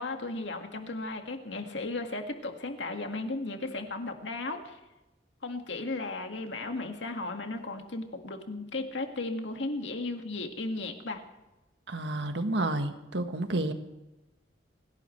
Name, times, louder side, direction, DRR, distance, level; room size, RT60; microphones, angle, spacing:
voice 1, 0.0-4.8 5.4-11.2, left 2 dB, 85° left, 4 dB, 2.0 m, -35 dB
voice 2, 11.9-13.7, right 2 dB, 75° right, 7 dB, 1.4 m, -30 dB
27.0 x 12.0 x 3.3 m, 1.0 s
head